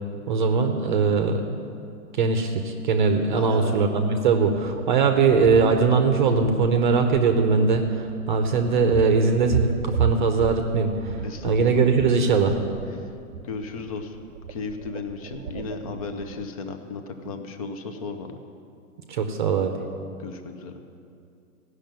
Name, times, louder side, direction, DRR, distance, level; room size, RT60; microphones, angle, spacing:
voice 1, 0.3-1.7 2.1-11.2 11.4-12.6 19.1-19.7, right 4 dB, 30° right, 6 dB, 0.8 m, -21 dB
voice 2, 3.3-3.8 11.2-11.8 12.9-13.1 13.4-18.4 20.2-20.8, left 4 dB, 25° left, 7 dB, 0.7 m, -35 dB
sound 1, 4.6-16.5, right 7 dB, 70° right, 0.8 m, -34 dB
15.5 x 6.5 x 9.0 m, 2.5 s
hypercardioid pair, 165°, 45 cm